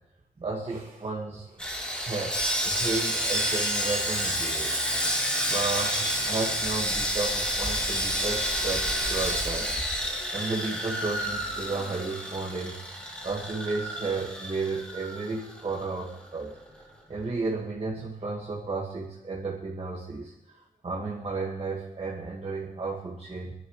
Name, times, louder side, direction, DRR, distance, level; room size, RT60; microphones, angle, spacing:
voice 1, 0.4-1.6 2.0-4.7 5.5-9.8 10.3-12.8 13.2-16.6 17.1-23.5, right 3 dB, 45° right, -4 dB, 1.7 m, -33 dB
Sawing, 1.6-16.3 16.7-16.9, equal, 5° left, 2.5 m, -29 dB
25.0 x 11.0 x 3.1 m, 0.90 s
wide cardioid pair, 125°, 15 cm